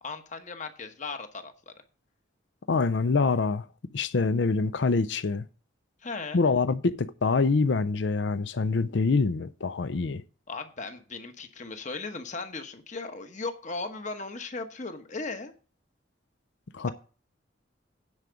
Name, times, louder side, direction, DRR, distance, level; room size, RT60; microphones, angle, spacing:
voice 1, 0.0-1.7 6.0-6.4 10.5-15.5, left 3 dB, 40° left, 1.1 m, -37 dB
voice 2, 2.7-3.7 3.9-5.5 6.3-10.2 16.7-16.9, left 4 dB, 65° left, 0.5 m, -25 dB
9.7 x 5.0 x 6.8 m
head